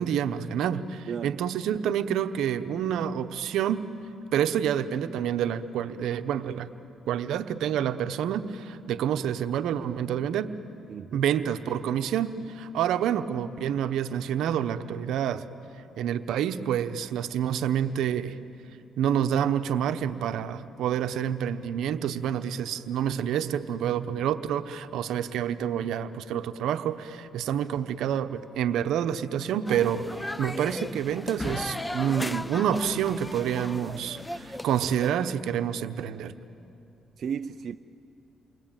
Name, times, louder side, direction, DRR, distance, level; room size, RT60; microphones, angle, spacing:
voice 1, 0.0-3.9 4.3-6.7 7.1-10.5 11.1-15.5 16.0-18.4 19.0-30.0 30.4-36.3, right 9 dB, 80° right, 10 dB, 1.0 m, -28 dB
voice 2, 10.9-11.2 37.2-37.8, right 7 dB, 60° right, 8 dB, 0.5 m, -34 dB
sound 1, 29.7-35.1, left 1 dB, 10° left, 0.6 m, -36 dB
29.0 x 22.5 x 9.0 m, 2.8 s
cardioid pair, 90°, 0 cm